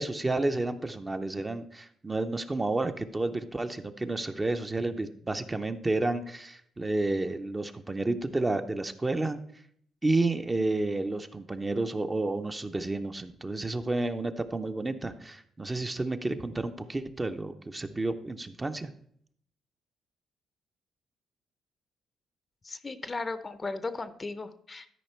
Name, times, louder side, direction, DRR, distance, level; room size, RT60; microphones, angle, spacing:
voice 1, 0.0-9.4 10.0-18.9, right 2 dB, 20° right, 7 dB, 0.7 m, -31 dB
voice 2, 22.6-24.9, left 3 dB, 25° left, 13 dB, 0.6 m, -36 dB
12.5 x 5.0 x 4.4 m, 0.66 s
cardioid pair, 90°, 0 cm